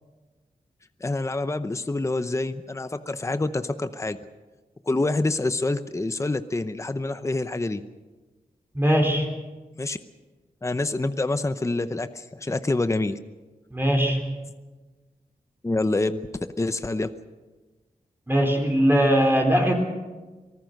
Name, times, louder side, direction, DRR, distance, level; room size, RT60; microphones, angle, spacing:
voice 1, 1.0-4.2 4.9-7.8 9.8-10.0 10.6-13.2 15.6-16.2 16.6-17.1, left 2 dB, 20° left, 11 dB, 0.8 m, -26 dB
voice 2, 8.7-9.3 13.7-14.4 18.3-19.8, equal, 15° right, 2 dB, 3.7 m, -21 dB
25.0 x 19.0 x 6.5 m, 1.3 s
wide cardioid pair, 110°, 15 cm